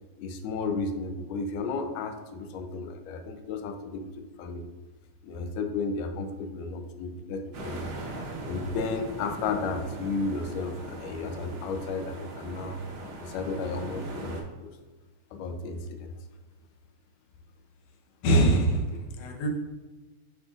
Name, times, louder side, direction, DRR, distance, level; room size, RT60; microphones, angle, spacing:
voice 1, 0.2-4.7 5.2-7.9 8.5-12.8 13.2-14.7 15.3-16.1, left 3 dB, 85° left, 7 dB, 2.1 m, -33 dB
sound 1, 7.5-14.4, right 1 dB, 80° right, 1.0 m, -39 dB
voice 2, 18.2-19.5, right 1 dB, 65° left, 2 dB, 1.8 m, -23 dB
7.1 x 6.4 x 2.4 m, 1.3 s
omnidirectional pair, 3.7 m